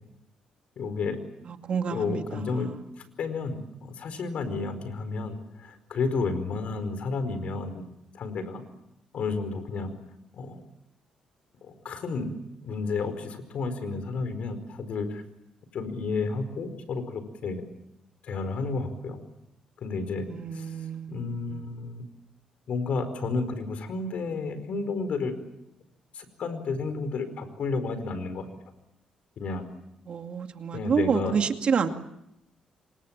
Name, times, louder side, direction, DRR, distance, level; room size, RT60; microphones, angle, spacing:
voice 1, 0.8-1.2 1.9-2.7 3.2-7.8 8.1-8.6 9.1-9.9 10.3-10.6 11.6-12.3 12.6-15.2 15.7-17.6 18.2-19.2 19.8-20.7 21.1-22.0 22.7-25.3 26.1-28.5 29.4-29.7 30.7-31.3, left 4 dB, 65° left, 10 dB, 4.7 m, -31 dB
voice 2, 1.5-2.7 20.3-21.2 21.5-21.7 30.1-31.9, right 6 dB, 50° right, 6 dB, 2.3 m, -29 dB
28.0 x 25.0 x 7.4 m, 0.82 s
cardioid pair, 105°, 2 cm